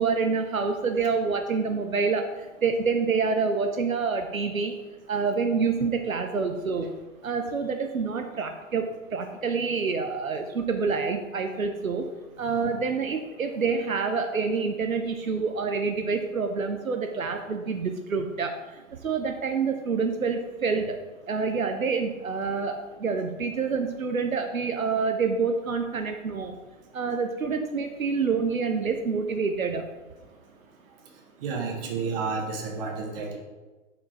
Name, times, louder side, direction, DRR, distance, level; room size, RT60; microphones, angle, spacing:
voice 1, 0.0-4.8 5.1-6.9 7.2-12.1 12.4-18.6 19.0-21.0 21.3-26.6 26.9-29.8, right 5 dB, 90° right, 5 dB, 0.7 m, -27 dB
voice 2, 31.4-33.4, right 4 dB, 45° right, 0 dB, 1.6 m, -31 dB
6.4 x 4.4 x 4.4 m, 1.2 s
figure-of-eight pair, 115°, 40 cm